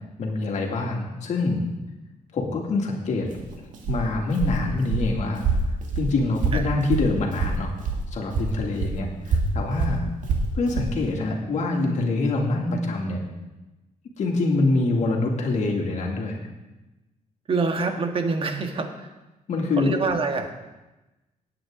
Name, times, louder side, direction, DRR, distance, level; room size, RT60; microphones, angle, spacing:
voice 1, 0.2-1.6 2.3-3.3 3.9-5.5 6.0-7.7 8.1-10.0 10.5-13.2 14.2-16.5 19.5-19.9, left 3 dB, 60° left, 0 dB, 2.5 m, -25 dB
Walk footsteps, 3.3-8.0 8.3-10.9, right 4 dB, 70° right, 2.0 m, -26 dB
voice 2, 17.5-19.1 19.8-20.5, right 4 dB, 40° right, 5 dB, 1.6 m, -25 dB
17.5 x 8.9 x 3.8 m, 1.0 s
cardioid pair, 110°, 14 cm